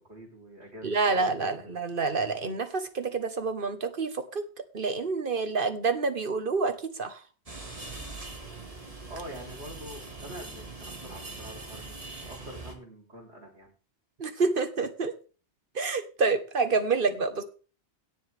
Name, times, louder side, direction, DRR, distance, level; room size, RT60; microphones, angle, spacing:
voice 1, 0.1-1.6 9.1-13.7, equal, 80° right, 0 dB, 4.1 m, -45 dB
voice 2, 0.8-4.4 4.7-7.2 14.2-15.1 15.7-17.4, right 4 dB, 50° right, 9 dB, 1.5 m, -28 dB
sound 1, 7.5-12.7, right 3 dB, 30° right, 2.1 m, -42 dB
17.5 x 7.2 x 3.5 m, 0.36 s
omnidirectional pair, 1.1 m